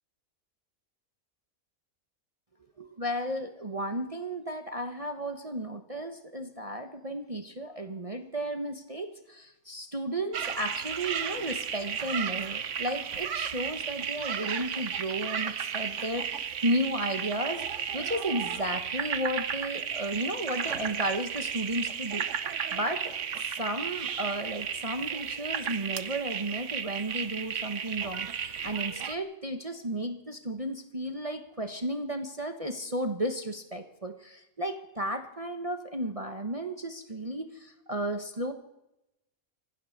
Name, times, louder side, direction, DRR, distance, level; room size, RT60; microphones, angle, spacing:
voice 1, 2.8-38.5, right 1 dB, 25° right, 6 dB, 1.2 m, -34 dB
sound 1, 10.3-29.1, right 8 dB, 60° right, 1.2 m, -34 dB
25.5 x 16.0 x 6.7 m, 0.92 s
omnidirectional pair, 1.5 m